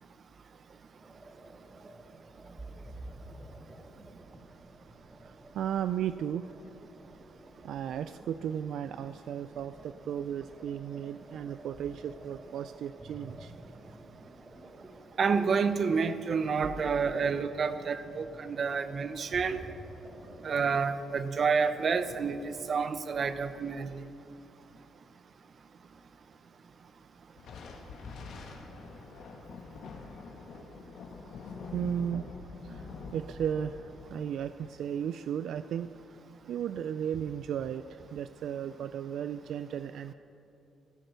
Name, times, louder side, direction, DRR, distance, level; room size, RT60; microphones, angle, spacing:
sound 1, 1.0-20.7, right 2 dB, 25° right, 1.7 m, -50 dB
voice 1, 5.2-6.5 7.6-13.5 31.4-32.3 32.6-35.9 36.5-40.1, right 9 dB, 75° right, 12 dB, 0.4 m, -35 dB
voice 2, 15.2-19.6 20.4-24.0, right 5 dB, 50° right, 11 dB, 0.8 m, -29 dB
sound 2, 20.1-23.4 27.4-34.3, left 4 dB, 70° left, 1.8 m, -46 dB
15.0 x 12.0 x 6.7 m, 2.8 s
cardioid pair, 90°, 0 cm